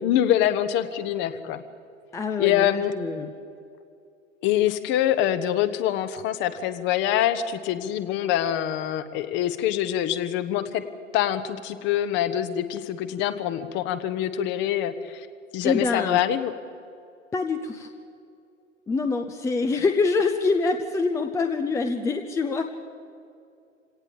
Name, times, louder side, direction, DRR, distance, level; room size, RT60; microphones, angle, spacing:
voice 1, 0.0-1.6 2.4-2.9 4.4-10.8 11.1-15.3 15.5-16.5, left 11 dB, 30° left, 12 dB, 1.2 m, -25 dB
voice 2, 2.1-3.3 15.6-16.2 17.3-17.9 18.9-22.6, left 4 dB, 10° left, 6 dB, 0.7 m, -25 dB
26.5 x 18.0 x 7.3 m, 2.5 s
figure-of-eight pair, 105°, 39 cm